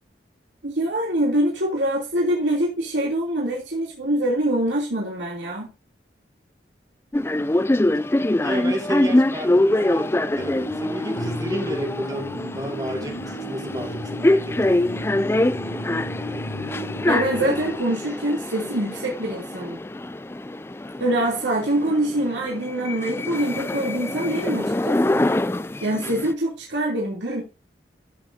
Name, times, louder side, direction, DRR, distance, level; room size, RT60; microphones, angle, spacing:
voice 1, 0.6-5.7 17.1-19.8 21.0-25.3 25.8-27.4, right 1 dB, 90° right, 3.0 m, -24 dB
sound 1, 7.1-26.3, left 1 dB, 15° left, 0.4 m, -24 dB
voice 2, 8.4-14.6, right 1 dB, 20° right, 2.0 m, -32 dB
sound 2, 10.3-17.8, equal, 60° left, 4.0 m, -34 dB
14.0 x 7.3 x 2.7 m
head